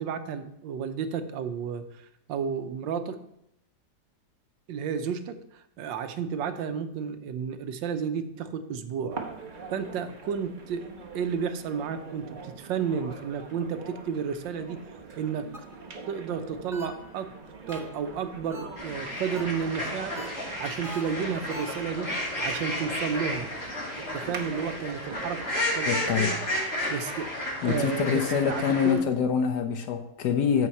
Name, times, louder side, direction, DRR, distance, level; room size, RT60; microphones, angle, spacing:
voice 1, 0.0-3.2 4.7-9.2 9.7-10.9 11.1-14.8 15.2-15.5 16.1-17.3 17.7-20.2 20.6-23.5 24.0-25.4 25.7-26.4 26.9-27.3 27.6-29.0, right 7 dB, 90° right, 1.4 m, -32 dB
sound 1, 9.1-25.6, right 4 dB, 35° right, 0.9 m, -44 dB
sound 2, 15.5-15.9 16.7-17.2 17.7-18.1 18.5-19.0 19.4-19.8 20.1-21.8, right 1 dB, 5° right, 0.5 m, -44 dB
sound 3, 18.8-28.9, left 1 dB, 45° left, 3.2 m, -32 dB
voice 2, 25.9-26.4 27.6-30.7, left 7 dB, 70° left, 1.3 m, -25 dB
13.5 x 4.6 x 4.2 m
omnidirectional pair, 2.0 m